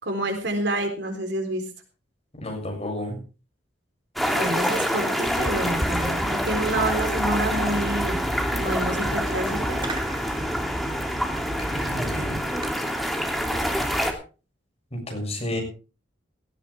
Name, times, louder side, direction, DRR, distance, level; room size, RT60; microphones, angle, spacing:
voice 1, 0.0-1.7 4.3-8.2 8.5-9.9, right 1 dB, 70° right, 5 dB, 3.9 m, -28 dB
voice 2, 2.4-3.2 11.6-12.4 14.9-15.6, left 1 dB, 35° left, 3 dB, 6.6 m, -31 dB
sound 1, 4.2-14.1, equal, ahead, 2.8 m, -26 dB
Fireworks, 5.3-12.7, right 1 dB, 25° right, 2.5 m, -33 dB
17.5 x 15.0 x 3.5 m, 0.34 s
head